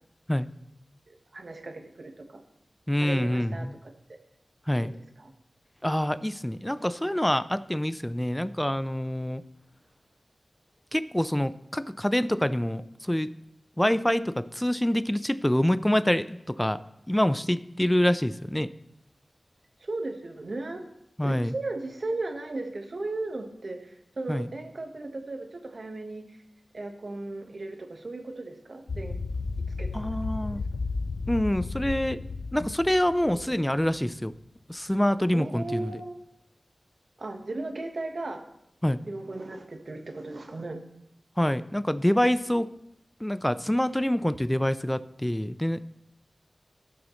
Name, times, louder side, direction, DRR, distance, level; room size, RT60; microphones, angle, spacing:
voice 1, 1.1-2.4 3.0-3.7 4.1-4.2 4.8-4.9 5.2-5.3 19.8-20.8 21.2-26.4 26.7-29.2 29.8-30.0 30.4-30.6 33.4-33.6 35.3-36.2 37.2-38.4 39.0-40.8, right 2 dB, 65° right, 4 dB, 1.3 m, -36 dB
voice 2, 2.9-3.7 4.7-4.9 5.8-9.4 10.9-13.3 13.8-16.8 17.1-18.7 21.2-21.5 24.3-24.5 29.9-30.6 31.3-32.2 32.5-34.3 34.7-35.9 38.8-39.0 41.4-42.7 43.2-45.9, left 1 dB, 10° left, 14 dB, 0.4 m, -26 dB
sound 1, 28.9-34.0, left 3 dB, 80° left, 0.4 m, -33 dB
15.0 x 6.3 x 3.1 m, 0.80 s
wide cardioid pair, 50°, 0 cm